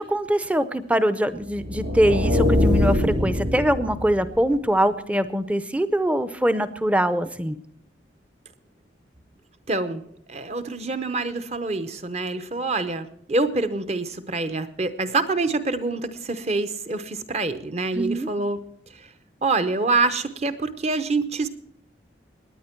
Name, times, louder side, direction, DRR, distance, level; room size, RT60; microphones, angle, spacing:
voice 1, 0.0-7.6 17.9-18.3, equal, 5° right, 12 dB, 0.5 m, -23 dB
Epic whoosh, 1.5-4.4, left 1 dB, 85° right, 2.4 m, -23 dB
voice 2, 9.7-10.0 10.3-18.6 19.4-21.5, right 3 dB, 35° right, 11 dB, 0.8 m, -26 dB
18.5 x 9.9 x 4.5 m, 0.71 s
head